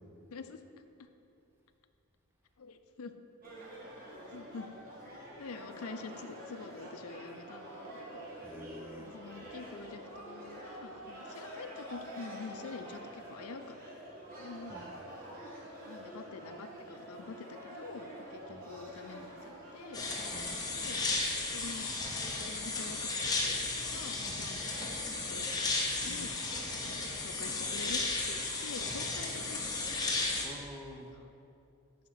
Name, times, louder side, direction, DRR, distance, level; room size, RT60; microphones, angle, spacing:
voice 1, 0.3-1.1 2.6-3.1 4.0-4.7 5.4-8.3 9.0-13.8 14.4-14.8 15.8-20.4 20.7-21.0 21.5-21.9 22.2-24.7 25.0-25.5 26.0-26.4 26.8-29.6 30.0-30.3 31.0-31.3, left 4 dB, 80° left, 8 dB, 0.5 m, -47 dB
sound 1, 3.4-20.4, right 1 dB, 40° right, 1.6 m, -47 dB
voice 2, 8.4-9.1 14.7-15.1 18.5-18.6 20.3-20.6 26.0-26.4 30.4-31.2, equal, 10° right, 2 dB, 0.5 m, -48 dB
sound 2, 19.9-30.5, left 3 dB, 15° left, 0.8 m, -34 dB
8.5 x 4.3 x 5.7 m, 2.7 s
head